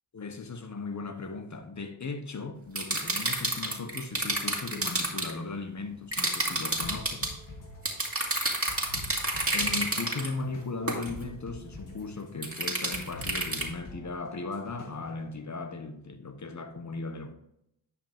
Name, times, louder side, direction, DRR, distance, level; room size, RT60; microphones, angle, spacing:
voice 1, 0.1-7.3 9.5-17.3, left 3 dB, 35° left, 1.0 m, -37 dB
sound 1, 2.8-5.3 6.1-7.3 7.9-10.3 10.9-11.1 12.4-13.7, right 2 dB, 30° right, 2.1 m, -29 dB
sound 2, 6.8-15.3, left 1 dB, 90° left, 2.6 m, -46 dB
9.9 x 5.3 x 3.6 m
cardioid pair, 55°, 49 cm